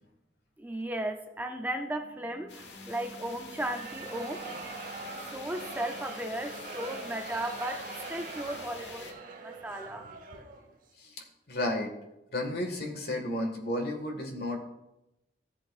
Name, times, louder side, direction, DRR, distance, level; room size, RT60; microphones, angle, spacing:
voice 1, 0.6-9.1 9.4-10.0, right 1 dB, 10° right, 5 dB, 0.5 m, -36 dB
sound 1, 2.5-9.1, left 4 dB, 90° left, 1.3 m, -47 dB
sound 2, 3.5-10.7, right 3 dB, 50° right, 0.9 m, -43 dB
voice 2, 11.5-11.9 12.3-14.6, left 1 dB, 60° left, 3 dB, 1.6 m, -32 dB
14.0 x 7.6 x 2.4 m, 0.91 s
head